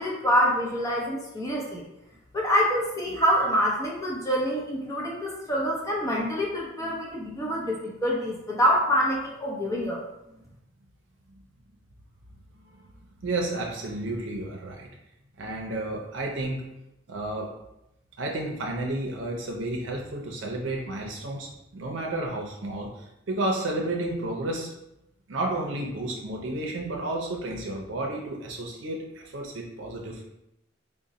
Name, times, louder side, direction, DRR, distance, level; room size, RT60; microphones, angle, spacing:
voice 1, 0.0-1.8 2.3-10.0, equal, 15° left, -3 dB, 0.7 m, -26 dB
voice 2, 13.2-14.9 15.4-16.6 17.1-17.5 18.2-24.7 25.3-30.2, right 2 dB, 75° right, 0 dB, 0.6 m, -31 dB
3.8 x 2.1 x 4.0 m, 0.88 s
head